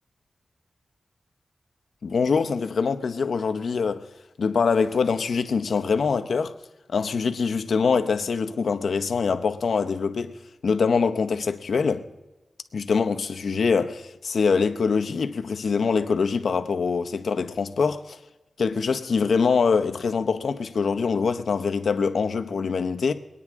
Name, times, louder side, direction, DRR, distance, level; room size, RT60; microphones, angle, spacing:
voice 1, 2.0-4.1 4.4-6.5 6.9-12.1 12.7-18.2 18.6-23.1, left 5 dB, 80° left, 0.8 m, -24 dB
23.0 x 9.5 x 3.6 m
wide cardioid pair, 80°, 0 cm